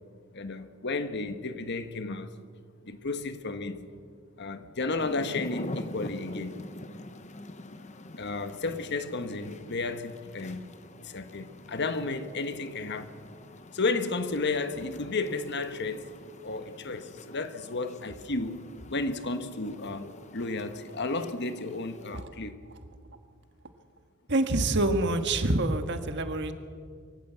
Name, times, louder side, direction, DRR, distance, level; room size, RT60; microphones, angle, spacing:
voice 1, 0.3-2.3 2.8-3.8 4.4-6.6 8.2-10.6 11.0-13.2 13.7-16.1 16.4-18.6 18.9-22.6, left 3 dB, 55° left, 1.3 m, -33 dB
sound 1, 5.0-22.2, left 2 dB, 35° left, 0.9 m, -45 dB
voice 2, 24.3-26.5, right 2 dB, 55° right, 1.6 m, -26 dB
23.5 x 15.0 x 8.0 m
head